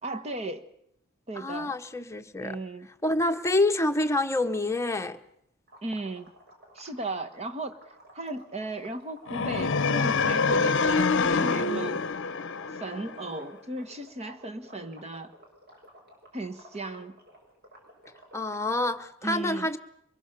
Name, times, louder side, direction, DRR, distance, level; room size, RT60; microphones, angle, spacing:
voice 1, 0.0-0.7 1.3-1.7 2.4-2.9 5.8-6.3 6.7-7.7 8.1-12.0 12.8-15.3 16.3-17.2 19.2-19.7, right 2 dB, 30° right, 1.4 m, -36 dB
voice 2, 1.4-2.6 3.0-5.2 18.3-19.8, left 2 dB, 15° left, 1.1 m, -27 dB
sound 1, 5.7-11.7 12.0-18.6, right 1 dB, 50° right, 6.8 m, -52 dB
sound 2, 9.3-13.4, left 4 dB, 60° left, 0.8 m, -26 dB
24.5 x 22.0 x 6.8 m
head